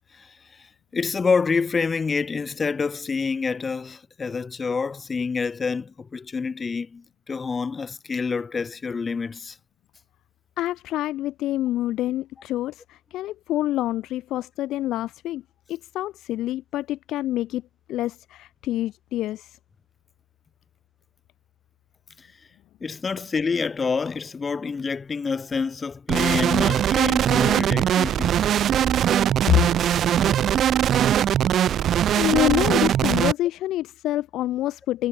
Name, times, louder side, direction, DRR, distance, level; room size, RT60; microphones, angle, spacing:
voice 1, 0.9-9.6 22.2-22.3 22.8-28.4, left 5 dB, 25° left, 2.6 m, -27 dB
voice 2, 10.6-15.4 15.7-17.6 17.9-19.6 29.5-29.6 31.9-35.1, left 14 dB, 90° left, 3.2 m, -26 dB
sound 1, 26.1-33.3, right 10 dB, 55° right, 0.6 m, -21 dB
cardioid pair, 165°, 0 cm